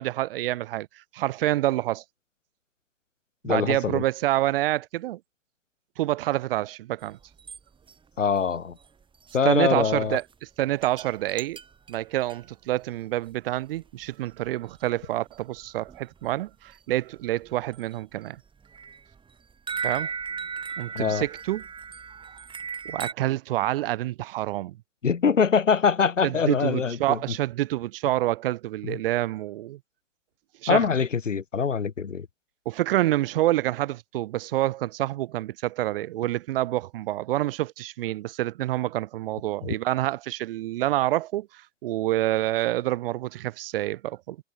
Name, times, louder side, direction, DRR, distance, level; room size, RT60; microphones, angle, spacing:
voice 1, 0.0-2.0 3.4-5.2 6.0-7.2 9.4-10.2 10.6-11.6 11.9-18.4 19.8-20.1 20.8-21.6 22.8-24.8 26.2-29.8 30.6-30.9 32.7-44.4, right 15 dB, 50° right, 0.9 m, -27 dB
voice 2, 3.4-4.0 8.2-8.8 9.3-10.2 20.9-21.3 25.0-27.2 28.8-29.0 30.7-32.3, left 6 dB, 90° left, 0.8 m, -23 dB
sound 1, 7.0-7.6 7.9-8.0 8.4-8.5 8.7-9.4 9.8-9.9 10.1-10.3 10.8-12.5 13.3-13.4 13.6-13.8 14.0-14.1 14.5-14.7 15.0-15.1 15.3-16.3 16.7-16.8 17.2-18.0 18.4-23.1, right 6 dB, 15° right, 3.6 m, -37 dB
figure-of-eight pair, 105°, 36 cm